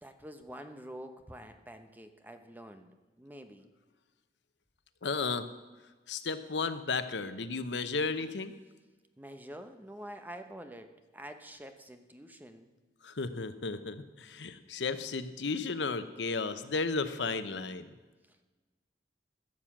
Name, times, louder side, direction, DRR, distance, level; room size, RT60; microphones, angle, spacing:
voice 1, 0.0-2.9 3.2-3.7 9.2-12.7, right 1 dB, 10° right, 7 dB, 0.9 m, -47 dB
voice 2, 5.0-5.5 6.1-8.5 13.0-17.9, left 4 dB, 85° left, 11 dB, 0.9 m, -34 dB
14.5 x 7.4 x 7.4 m, 1.3 s
head